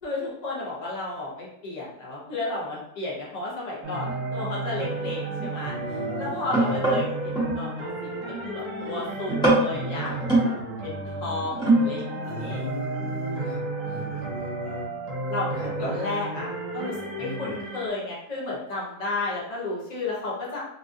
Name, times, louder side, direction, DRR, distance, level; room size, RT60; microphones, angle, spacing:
voice 1, 0.0-5.7 6.2-10.5 10.8-12.6 13.3-13.4 15.3-20.6, left 2 dB, 80° left, -5 dB, 0.3 m, -33 dB
sound 1, 3.8-17.9, right 2 dB, 70° right, 1.1 m, -32 dB
sound 2, 4.0-4.1 4.6-7.6 8.0-8.4 8.8-9.0 9.3-10.5 11.4-12.1 12.4-12.5, right 2 dB, 5° left, 0.6 m, -24 dB
voice 2, 5.9-6.8 12.2-14.9 15.6-16.0 17.2-17.6, right 1 dB, 45° left, -5 dB, 1.1 m, -37 dB
3.3 x 2.4 x 2.5 m, 0.78 s
omnidirectional pair, 1.9 m